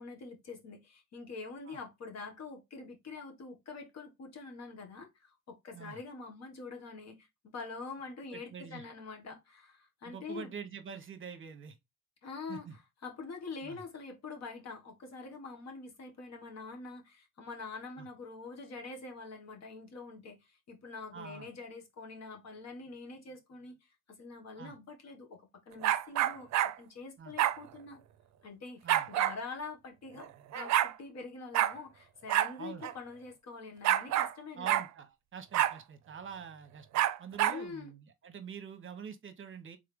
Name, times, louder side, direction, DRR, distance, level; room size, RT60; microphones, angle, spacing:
voice 1, 0.0-10.5 12.2-26.5 26.8-28.0 28.4-34.8 37.5-37.9, left 4 dB, 60° left, 1.5 m, -45 dB
voice 2, 8.3-8.8 10.1-11.8 12.5-12.7 13.6-13.8 18.0-18.1 21.1-21.5 24.6-24.7 27.2-27.3 28.8-29.1 32.6-32.8 34.6-39.8, right 6 dB, 40° right, 0.9 m, -46 dB
sound 1, 25.8-26.7 27.4-27.6 28.9-29.4 30.2-30.3 30.5-30.9 31.5-31.7 32.3-32.5 32.8-32.9 33.8-34.3 34.7-34.9 35.5-35.8 36.9-37.6, right 13 dB, 65° right, 0.5 m, -27 dB
3.7 x 3.3 x 3.4 m
cardioid pair, 90°, 30 cm